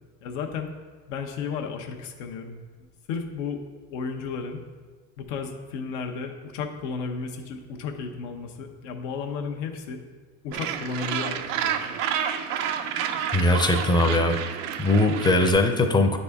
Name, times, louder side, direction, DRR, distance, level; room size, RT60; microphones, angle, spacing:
voice 1, 0.2-0.7 1.1-3.6 3.9-4.6 5.2-10.0 10.4-11.8, left 5 dB, 85° left, 4 dB, 0.9 m, -33 dB
Gull seagull, 10.5-15.5, right 9 dB, 85° right, 0.6 m, -29 dB
voice 2, 13.3-14.4 14.8-16.2, left 2 dB, 10° left, 5 dB, 0.6 m, -20 dB
9.6 x 4.2 x 3.5 m, 1.4 s
supercardioid pair, 105°, 36 cm